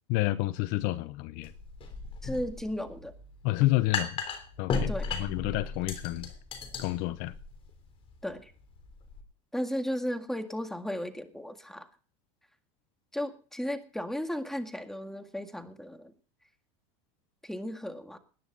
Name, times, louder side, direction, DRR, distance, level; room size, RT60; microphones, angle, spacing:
voice 1, 0.1-1.5 3.4-4.2 4.6-6.3 6.8-7.3, left 18 dB, 60° left, 0.9 m, -29 dB
sound 1, 1.4-9.2, left 4 dB, 35° left, 3.4 m, -36 dB
voice 2, 2.2-3.1 4.9-5.1 8.2-8.5 9.5-11.9 13.1-16.1 17.4-18.2, equal, ahead, 1.9 m, -35 dB
19.5 x 10.0 x 4.0 m
supercardioid pair, 125°, 16 cm